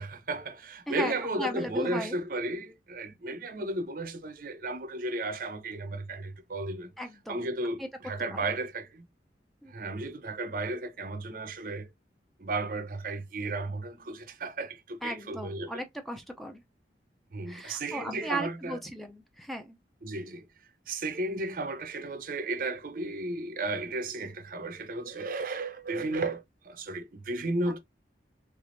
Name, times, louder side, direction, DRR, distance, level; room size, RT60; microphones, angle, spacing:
voice 1, 0.0-6.9 7.3-9.0 9.7-11.9 12.4-15.8 17.3-18.8 20.0-20.5 20.9-27.8, right 2 dB, 50° right, 0.6 m, -34 dB
voice 2, 0.9-2.1 7.0-7.4 7.8-7.9 8.3-8.4 9.6-9.7 15.0-16.6 17.5-19.8, equal, ahead, 0.5 m, -36 dB
3.4 x 3.3 x 2.5 m
head